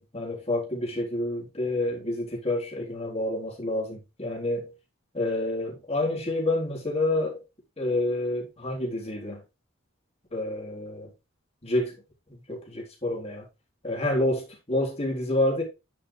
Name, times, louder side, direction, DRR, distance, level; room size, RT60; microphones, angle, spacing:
voice 1, 0.0-4.7 5.1-7.4 7.8-9.4 10.3-11.1 11.6-12.0 12.3-13.5 13.8-15.6, left 1 dB, 30° left, 3.8 m, -28 dB
10.5 x 6.3 x 3.3 m
head